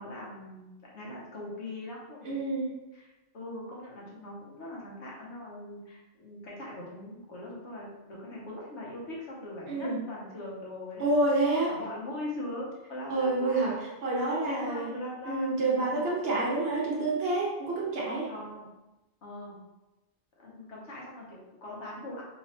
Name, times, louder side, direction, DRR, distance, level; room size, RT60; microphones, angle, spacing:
voice 1, 0.0-2.4 2.9-11.3 11.7-13.8 14.2-16.1 18.3-18.7 19.2-19.6 20.4-22.2, left 1 dB, 70° left, -4 dB, 1.2 m, -41 dB
voice 2, 2.2-2.7 9.7-10.0 11.0-11.7 13.1-13.7 14.0-14.9 15.3-18.3, right 2 dB, 60° right, -4 dB, 1.0 m, -28 dB
3.0 x 2.9 x 2.8 m, 1.0 s
omnidirectional pair, 1.2 m